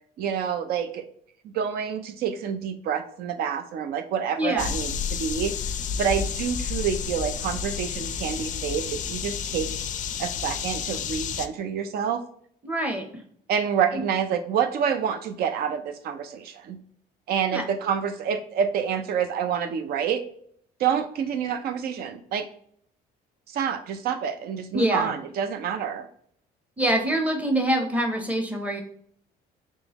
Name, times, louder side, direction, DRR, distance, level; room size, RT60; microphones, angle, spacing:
voice 1, 0.2-1.0 1.5-5.5 6.0-9.7 10.2-12.2 13.5-16.8 17.3-20.2 20.8-22.5 23.5-26.1, right 7 dB, 65° right, 10 dB, 0.6 m, -27 dB
voice 2, 4.4-4.7 12.6-13.0 13.9-14.0 17.5-17.6 24.7-25.1 26.8-28.8, right 1 dB, 10° right, 3 dB, 0.8 m, -25 dB
sound 1, 4.6-11.5, left 7 dB, 50° left, 0.4 m, -31 dB
3.7 x 3.1 x 2.9 m, 0.63 s
cardioid pair, 110°, 17 cm